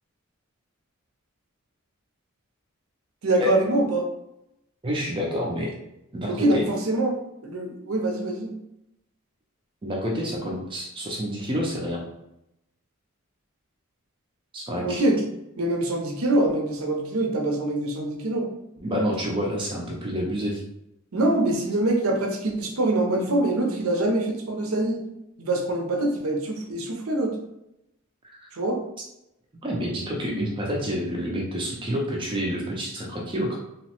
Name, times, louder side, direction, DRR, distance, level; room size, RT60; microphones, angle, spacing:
voice 1, 3.2-4.0 6.3-8.5 14.8-15.2 15.6-18.5 21.1-25.0 25.4-27.4 28.5-28.8, right 2 dB, 75° right, 2 dB, 0.6 m, -24 dB
voice 2, 4.8-5.7 6.1-6.6 9.8-12.0 14.5-15.0 18.8-20.6 28.2-28.5 29.6-33.6, equal, 20° right, -2 dB, 0.4 m, -28 dB
2.9 x 2.0 x 2.8 m, 0.85 s
head